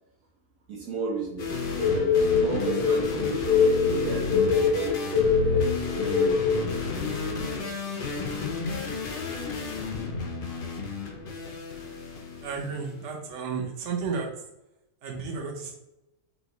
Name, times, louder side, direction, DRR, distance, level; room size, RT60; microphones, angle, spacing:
voice 1, 0.7-1.5 1.9-6.5 6.8-7.0, right 3 dB, 80° right, -5 dB, 1.5 m, -35 dB
sound 1, 1.4-12.9, left 4 dB, 55° left, 0.6 m, -32 dB
sound 2, 1.8-6.6, left 5 dB, 30° right, 1.0 m, -23 dB
voice 2, 12.4-14.3 15.0-15.7, right 5 dB, 55° right, 1 dB, 1.0 m, -32 dB
5.5 x 2.5 x 2.9 m, 0.91 s
omnidirectional pair, 1.6 m